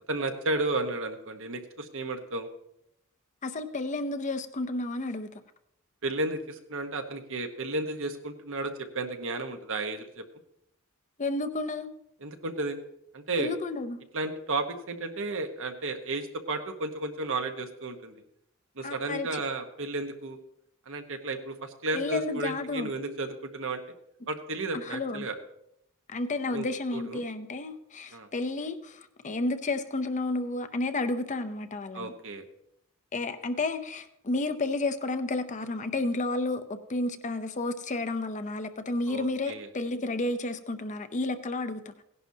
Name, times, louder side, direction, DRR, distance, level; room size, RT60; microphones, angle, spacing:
voice 1, 0.1-2.5 6.0-10.2 12.2-12.8 13.1-13.5 14.1-18.1 18.8-20.4 20.9-23.8 24.3-25.3 26.5-26.7 26.9-27.2 28.1-28.3 31.9-32.4 39.1-39.7, right 2 dB, 65° right, 1.2 m, -33 dB
voice 2, 3.4-5.3 11.2-11.9 13.4-14.0 18.8-19.4 21.9-22.9 24.7-25.3 26.1-32.1 33.1-41.9, left 2 dB, 35° left, 0.6 m, -31 dB
17.0 x 11.0 x 2.8 m
head